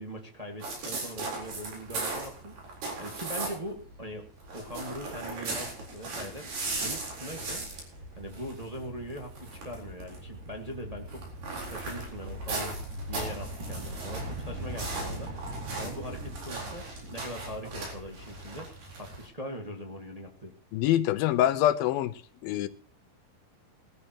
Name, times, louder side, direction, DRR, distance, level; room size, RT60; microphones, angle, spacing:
voice 1, 0.0-2.5 3.0-6.5 6.8-7.7 8.1-11.2 11.5-12.8 13.1-15.3 15.7-16.8 17.1-18.7 19.0-20.5, equal, 35° right, 0.6 m, -41 dB
sound 1, 0.6-3.8 4.1-19.3, right 2 dB, 60° right, 5.7 m, -37 dB
voice 2, 20.7-22.1 22.4-22.7, left 13 dB, 80° left, 2.6 m, -25 dB
19.5 x 13.5 x 3.0 m
omnidirectional pair, 4.3 m